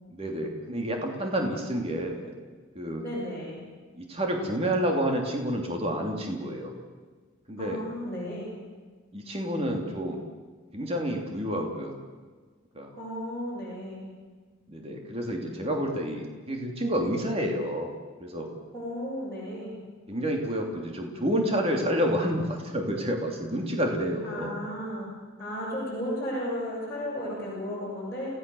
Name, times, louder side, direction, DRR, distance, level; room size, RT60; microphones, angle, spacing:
voice 1, 0.1-2.3 2.7-3.0 4.0-6.7 7.5-7.8 9.1-10.2 10.7-11.9 12.7-12.9 14.7-17.9 18.2-18.5 20.1-24.6, equal, 30° right, 2 dB, 2.9 m, -29 dB
voice 2, 3.0-3.6 7.6-8.5 12.9-14.1 18.7-19.8 24.2-25.1 25.4-28.4, equal, 10° left, -9 dB, 7.9 m, -34 dB
28.5 x 17.5 x 7.1 m, 1.4 s
head